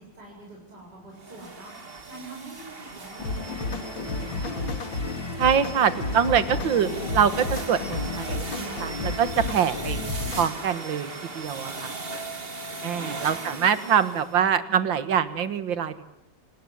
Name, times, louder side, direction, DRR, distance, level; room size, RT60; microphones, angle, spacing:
voice 1, 0.0-4.6 12.9-13.6 13.9-15.0, right 2 dB, 55° right, -3 dB, 8.1 m, -46 dB
sound 1, 1.2-14.4, right 3 dB, 30° right, 2.3 m, -38 dB
sound 2, 3.2-10.5, left 3 dB, 80° left, 3.1 m, -32 dB
voice 2, 5.4-11.9 12.8-16.0, right 8 dB, 75° right, 13 dB, 2.3 m, -24 dB
29.5 x 19.0 x 9.9 m, 0.82 s
omnidirectional pair, 2.1 m